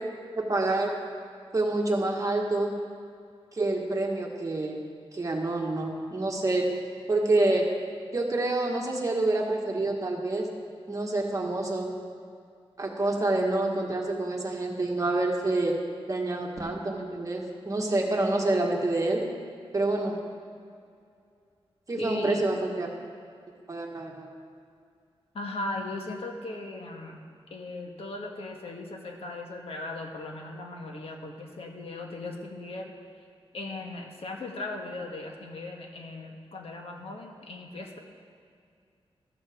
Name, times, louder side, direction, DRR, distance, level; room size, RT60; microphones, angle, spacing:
voice 1, 0.4-0.9 1.5-2.8 3.5-4.8 5.1-6.7 7.1-7.7 8.1-10.5 10.9-11.9 12.8-15.8 16.1-19.2 19.7-20.2 21.9-22.9 23.7-24.3, right 2 dB, 35° right, 0 dB, 1.7 m, -27 dB
voice 2, 22.0-22.4 25.3-27.2 27.5-32.9 33.5-38.0, left 2 dB, 70° left, 1 dB, 1.5 m, -38 dB
14.0 x 13.5 x 3.7 m, 2.3 s
wide cardioid pair, 115°, 10 cm